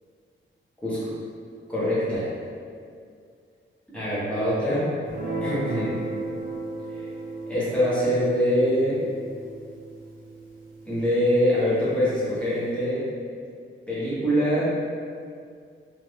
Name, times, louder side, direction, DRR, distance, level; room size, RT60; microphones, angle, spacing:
voice 1, 0.8-1.1 1.7-2.3 3.9-4.9 5.4-6.0 7.0-7.1 7.5-9.0 10.9-13.0 13.9-14.6, equal, 5° left, -11 dB, 0.9 m, -24 dB
Guitar, 5.1-11.7, right 2 dB, 45° right, 0.7 m, -35 dB
2.6 x 2.4 x 3.3 m, 2.2 s
wide cardioid pair, 165°, 21 cm